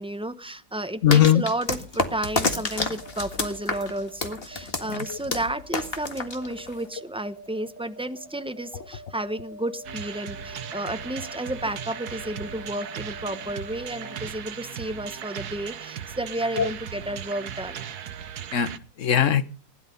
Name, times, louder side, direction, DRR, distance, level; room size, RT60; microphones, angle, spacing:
voice 1, 0.0-17.8, right 1 dB, 5° right, 9 dB, 0.4 m, -32 dB
voice 2, 1.0-1.4 4.9-5.2 16.6-16.7 18.5-19.5, left 9 dB, 45° left, 12 dB, 1.2 m, -20 dB
sound 1, 1.1-6.9, left 3 dB, 30° left, 1.9 m, -29 dB
sound 2, 2.5-14.2, equal, 10° left, 6.8 m, -45 dB
sound 3, 9.8-18.8, right 9 dB, 60° right, 1.4 m, -37 dB
20.0 x 11.5 x 5.3 m, 0.37 s
omnidirectional pair, 2.1 m